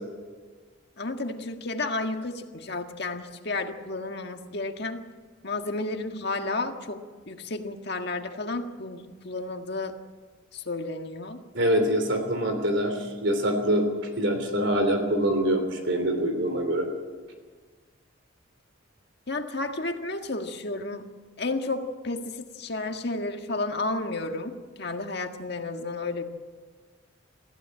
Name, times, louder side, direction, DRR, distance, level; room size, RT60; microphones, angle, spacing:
voice 1, 1.0-5.0 5.4-9.9 10.5-11.4 19.3-26.2, left 2 dB, 50° left, 5 dB, 1.7 m, -32 dB
voice 2, 11.5-13.9 14.2-16.9, equal, 60° right, 6 dB, 3.3 m, -25 dB
24.0 x 15.5 x 8.9 m, 1.5 s
head